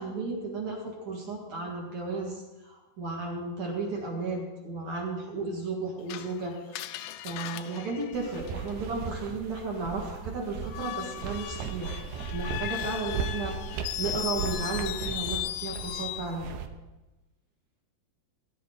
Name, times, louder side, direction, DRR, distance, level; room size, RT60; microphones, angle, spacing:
voice 1, 0.0-6.8 7.2-12.0 12.3-16.5, right 3 dB, 50° right, -2 dB, 2.4 m, -34 dB
Screech, 6.1-9.0 10.6-16.3, left 13 dB, 85° left, 2.3 m, -37 dB
sound 1, 8.1-16.7, right 6 dB, 75° right, 2.7 m, -37 dB
17.5 x 11.0 x 4.0 m, 1.1 s
omnidirectional pair, 5.2 m